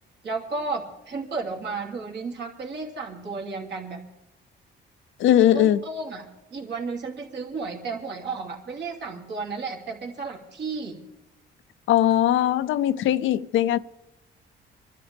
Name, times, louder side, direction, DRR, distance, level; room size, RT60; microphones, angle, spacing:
voice 1, 0.2-4.0 5.5-11.0, right 4 dB, 60° right, 2.9 m, -33 dB
voice 2, 5.2-5.8 11.9-13.8, left 12 dB, 80° left, 0.6 m, -20 dB
26.5 x 12.5 x 3.5 m
cardioid pair, 90°, 20 cm